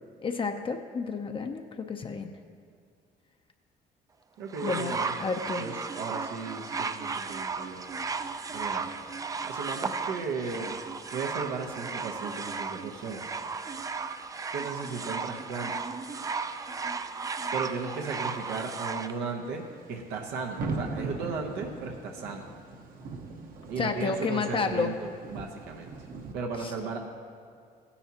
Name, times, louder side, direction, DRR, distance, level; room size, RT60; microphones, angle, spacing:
voice 1, 0.2-2.3 4.6-5.7 23.8-24.9 26.6-26.7, left 4 dB, 30° left, 5 dB, 0.5 m, -31 dB
voice 2, 4.4-5.1 5.6-7.9 8.5-8.8 9.4-10.8 11.1-13.2 14.5-15.7 17.5-22.5 23.7-25.9 26.3-27.0, right 4 dB, 85° right, 1 dB, 0.9 m, -36 dB
sound 1, 4.5-19.1 20.0-20.1, right 4 dB, 20° right, 0.4 m, -35 dB
sound 2, 7.1-26.3, right 3 dB, 60° right, 1.0 m, -44 dB
15.0 x 9.8 x 2.9 m, 2.2 s
cardioid pair, 110°, 17 cm